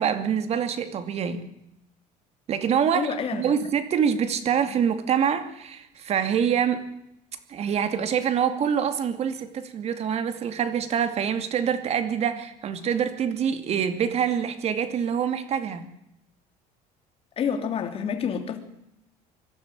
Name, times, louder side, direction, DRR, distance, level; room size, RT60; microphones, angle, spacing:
voice 1, 0.0-1.4 2.5-6.8 7.5-15.8, right 8 dB, 40° right, 2.4 m, -25 dB
voice 2, 2.9-3.4 17.4-18.6, left 7 dB, 35° left, 3.1 m, -28 dB
24.0 x 12.5 x 9.0 m
cardioid pair, 140°, 16 cm